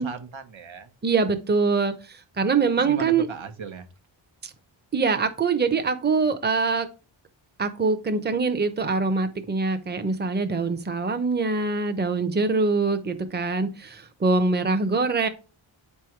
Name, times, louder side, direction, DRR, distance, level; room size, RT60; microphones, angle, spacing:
voice 1, 0.0-0.9 2.8-3.9, right 5 dB, 70° right, 7 dB, 1.3 m, -37 dB
voice 2, 1.0-3.3 4.9-6.9 7.6-15.3, right 4 dB, 20° right, 8 dB, 0.9 m, -24 dB
8.6 x 3.4 x 4.5 m, 0.33 s
wide cardioid pair, 80°, 48 cm